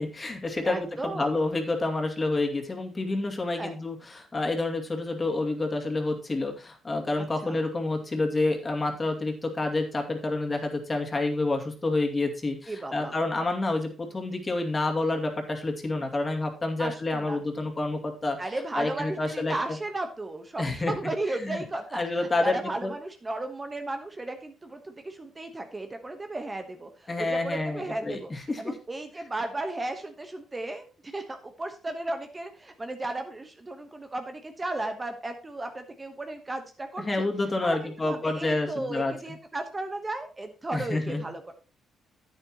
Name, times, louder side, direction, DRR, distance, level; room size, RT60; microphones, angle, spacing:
voice 1, 0.0-18.4 18.7-19.5 20.6-20.9 21.4-21.6 21.9-22.9 27.1-28.7 37.0-39.1 40.7-41.2, left 2 dB, 25° left, 3 dB, 2.4 m, -28 dB
voice 2, 0.6-1.3 3.5-3.8 7.4-7.6 12.7-13.2 16.8-17.4 18.4-28.3 28.6-37.3 37.6-41.5, right 2 dB, 20° right, 6 dB, 1.2 m, -35 dB
10.5 x 9.0 x 3.0 m, 0.35 s
cardioid pair, 90°, 0 cm